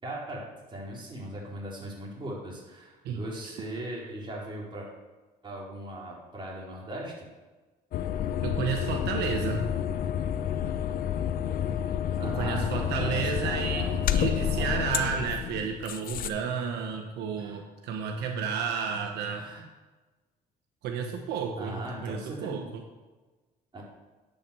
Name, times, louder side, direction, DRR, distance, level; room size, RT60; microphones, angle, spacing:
voice 1, 0.0-0.4 0.7-4.9 5.4-7.1 12.2-14.0 14.4-14.7 17.4-17.6 19.4-19.6 21.6-22.7 23.7-23.8, right 1 dB, 30° right, -4 dB, 3.9 m, -39 dB
sound 1, 7.9-16.3, left 9 dB, 55° left, 0.7 m, -29 dB
voice 2, 8.4-9.7 12.2-19.5 20.8-22.6, right 6 dB, 85° right, 3 dB, 1.1 m, -32 dB
10.5 x 6.2 x 6.8 m, 1.2 s
cardioid pair, 110°, 17 cm